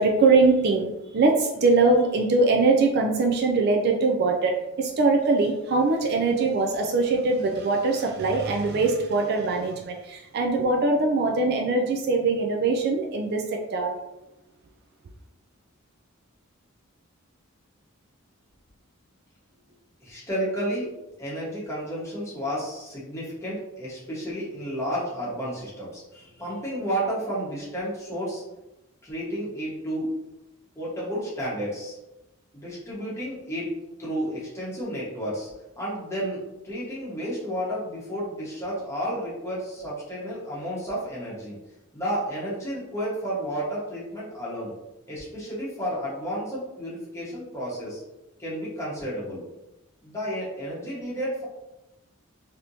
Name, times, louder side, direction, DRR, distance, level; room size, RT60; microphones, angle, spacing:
voice 1, 0.0-14.0, right 3 dB, 50° right, 2 dB, 0.3 m, -22 dB
voice 2, 20.0-20.9 21.2-28.4 29.0-30.2 30.7-32.0 32.5-33.7 34.0-35.5 35.8-41.6 41.9-44.7 45.1-48.0 48.4-49.4 50.0-51.4, equal, 15° left, -8 dB, 1.2 m, -31 dB
3.4 x 2.8 x 2.6 m, 0.96 s
head